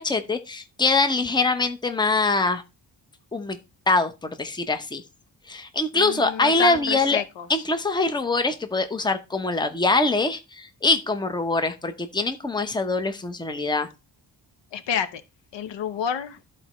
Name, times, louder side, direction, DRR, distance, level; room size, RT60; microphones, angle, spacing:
voice 1, 0.0-2.6 3.3-3.6 3.9-5.0 5.5-7.2 7.5-13.9, left 3 dB, 10° left, 0.8 m, -23 dB
voice 2, 5.9-7.5 14.7-15.2 15.5-16.4, left 7 dB, 80° left, 0.9 m, -29 dB
13.0 x 4.4 x 3.1 m
wide cardioid pair, 135°, 43 cm